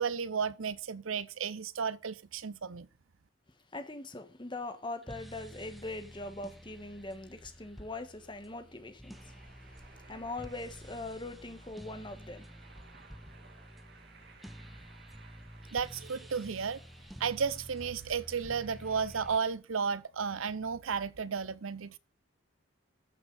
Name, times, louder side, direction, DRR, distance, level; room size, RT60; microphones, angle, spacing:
voice 1, 0.0-2.9 15.7-16.8 17.2-22.0, right 6 dB, 80° right, 0.7 m, -33 dB
voice 2, 3.7-9.4 9.7-12.4, left 2 dB, 25° left, 1.4 m, -42 dB
sound 1, 5.0-19.4, equal, ahead, 0.7 m, -51 dB
sound 2, 9.1-19.3, right 4 dB, 50° right, 1.8 m, -59 dB
14.0 x 6.1 x 5.4 m
head